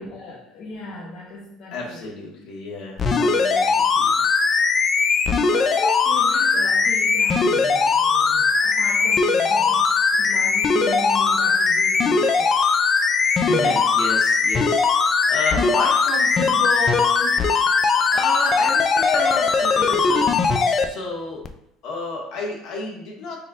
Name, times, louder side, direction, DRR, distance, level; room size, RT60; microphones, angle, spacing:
voice 1, 0.0-2.1 5.4-12.7, left 2 dB, 50° left, -4 dB, 0.7 m, -37 dB
voice 2, 1.7-4.1 13.4-17.3 18.1-20.4 20.8-21.4 21.8-23.4, left 3 dB, 70° left, -3 dB, 1.4 m, -30 dB
sound 1, 3.0-20.9 21.4-21.5, left 4 dB, 30° left, 0.3 m, -19 dB
4.1 x 3.6 x 2.5 m, 0.80 s
cardioid pair, 125°, 0 cm